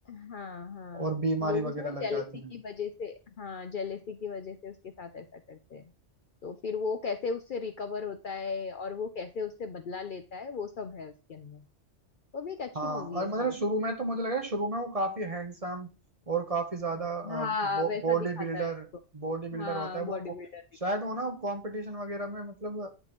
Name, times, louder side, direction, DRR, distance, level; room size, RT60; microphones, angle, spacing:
voice 1, 0.1-5.8 6.4-11.6 12.3-13.5 17.0-18.7 19.5-20.6, left 5 dB, 55° left, 7 dB, 0.7 m, -36 dB
voice 2, 0.9-2.2 12.7-15.9 16.3-17.5 17.8-18.9 19.1-20.2 20.8-22.9, right 3 dB, 35° right, 5 dB, 0.9 m, -32 dB
9.9 x 3.7 x 3.1 m, 0.30 s
omnidirectional pair, 1.2 m